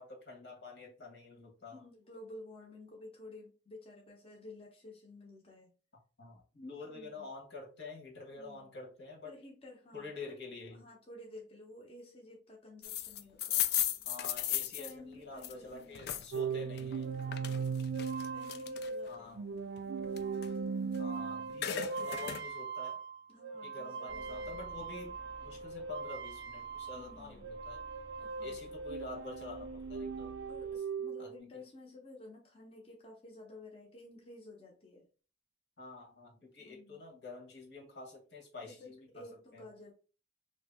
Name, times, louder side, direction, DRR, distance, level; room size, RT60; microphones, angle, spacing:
voice 1, 0.0-1.8 6.2-9.3 9.9-10.9 14.0-17.2 19.1-19.5 21.0-23.0 23.6-25.2 25.4-27.9 28.4-30.3 31.2-31.4 35.8-39.7, left 3 dB, 75° left, 1.3 m, -48 dB
voice 2, 1.7-5.7 6.9-7.3 8.3-8.7 9.2-10.3 10.8-13.6 14.6-16.3 16.5-16.8 17.2-17.8 18.3-19.4 23.3-24.6 26.9-27.6 28.2-28.7 30.5-35.1 36.6-37.0 38.6-39.9, left 2 dB, 35° left, 0.7 m, -53 dB
sound 1, 12.8-16.4 16.8-19.1 19.6-21.1 21.4-22.5, left 11 dB, 60° left, 0.3 m, -36 dB
sound 2, 16.3-27.2 27.4-31.3, right 5 dB, 65° right, 0.3 m, -39 dB
sound 3, 24.1-30.8, right 1 dB, 20° right, 0.6 m, -56 dB
2.9 x 2.7 x 3.4 m
head